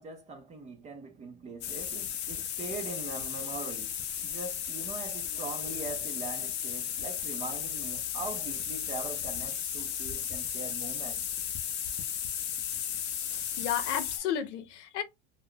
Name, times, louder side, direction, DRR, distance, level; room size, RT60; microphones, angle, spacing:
voice 1, 0.0-3.9 4.2-11.2, right 3 dB, 20° right, 0.6 m, -41 dB
sound 1, 1.6-14.2, left 9 dB, 30° left, 0.5 m, -35 dB
voice 2, 13.2-15.0, left 9 dB, 75° left, 0.8 m, -33 dB
2.3 x 2.2 x 3.5 m
supercardioid pair, 130°, 35 cm